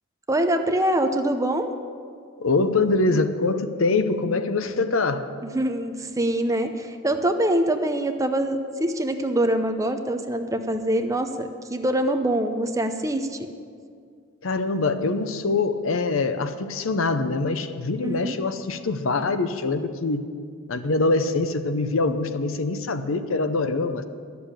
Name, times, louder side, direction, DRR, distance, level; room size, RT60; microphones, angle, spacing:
voice 1, 0.3-1.7 5.4-13.5 18.0-18.4, right 1 dB, 15° right, 6 dB, 0.7 m, -24 dB
voice 2, 2.4-5.3 14.4-20.3 20.7-24.0, left 3 dB, 70° left, 10 dB, 0.7 m, -24 dB
12.0 x 6.9 x 8.9 m, 2.2 s
head